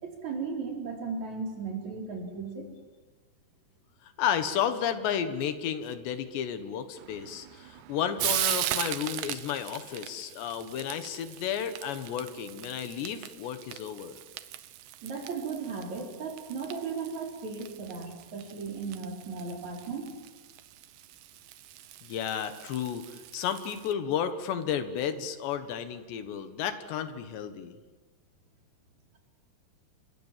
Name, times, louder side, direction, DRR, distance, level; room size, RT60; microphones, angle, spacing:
voice 1, 0.0-2.7 15.0-20.1, right 5 dB, 45° right, 1 dB, 5.1 m, -36 dB
voice 2, 4.0-14.2 22.0-27.8, left 9 dB, 80° left, 10 dB, 3.7 m, -32 dB
Frying (food), 7.0-23.9, right 14 dB, 85° right, 3.3 m, -39 dB
29.0 x 24.5 x 7.5 m, 1.3 s
omnidirectional pair, 4.9 m